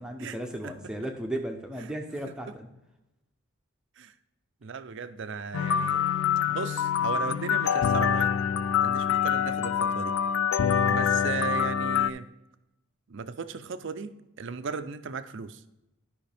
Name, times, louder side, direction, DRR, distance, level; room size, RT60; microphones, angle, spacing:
voice 1, 0.0-2.7, right 1 dB, 5° right, 2 dB, 0.7 m, -35 dB
voice 2, 4.6-6.1 6.5-8.3 8.8-10.1 10.9-12.3 13.1-15.6, right 5 dB, 55° right, 12 dB, 0.5 m, -36 dB
sound 1, 5.5-12.1, left 8 dB, 70° left, 0.3 m, -25 dB
12.0 x 5.6 x 3.4 m, 0.92 s
head